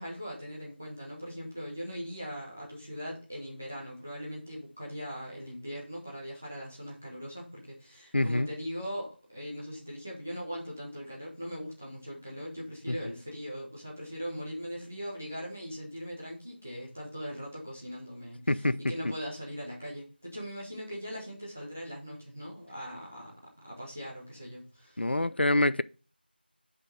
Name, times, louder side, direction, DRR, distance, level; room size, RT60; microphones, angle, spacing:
voice 1, 0.0-23.3 23.6-25.1, equal, 10° right, 0.8 m, -40 dB
voice 2, 8.1-8.5 18.5-18.8 25.0-25.8, left 1 dB, 75° left, 0.4 m, -25 dB
6.1 x 5.3 x 5.1 m
figure-of-eight pair, 175°, 6 cm